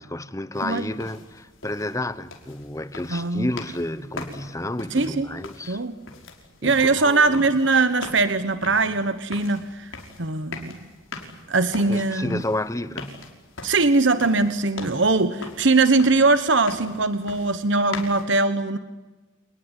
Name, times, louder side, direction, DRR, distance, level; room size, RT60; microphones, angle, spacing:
voice 1, 0.0-5.8 6.6-7.5 11.7-13.2 14.4-14.5, left 1 dB, 15° left, 0.9 m, -31 dB
sound 1, 0.5-18.2, left 3 dB, 80° left, 5.5 m, -41 dB
voice 2, 3.1-3.5 4.9-5.3 5.7-5.9 6.6-9.9 10.2-10.9 11.5-12.4 13.6-18.8, right 3 dB, 65° right, 1.3 m, -21 dB
28.5 x 20.0 x 9.9 m
head